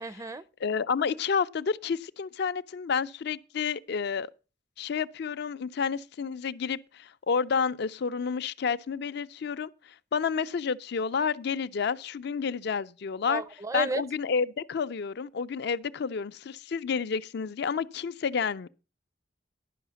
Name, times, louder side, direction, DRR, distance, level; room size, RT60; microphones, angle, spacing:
voice 1, 0.0-0.4 13.3-14.0, right 2 dB, 15° right, 0.4 m, -32 dB
voice 2, 0.6-4.3 4.8-9.7 10.1-13.4 13.7-18.7, left 6 dB, 60° left, 0.4 m, -30 dB
11.0 x 5.6 x 6.9 m
head